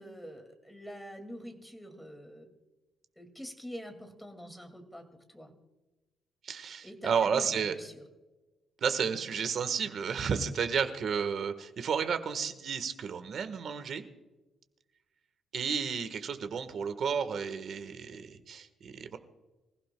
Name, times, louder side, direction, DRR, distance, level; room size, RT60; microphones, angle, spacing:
voice 1, 0.0-2.5 3.2-5.5 6.8-8.0, equal, 5° left, 5 dB, 2.3 m, -46 dB
voice 2, 6.4-7.7 8.8-14.0 15.5-19.2, right 6 dB, 50° right, 10 dB, 1.4 m, -32 dB
25.5 x 15.5 x 2.3 m, 1.1 s
cardioid pair, 155°, 0 cm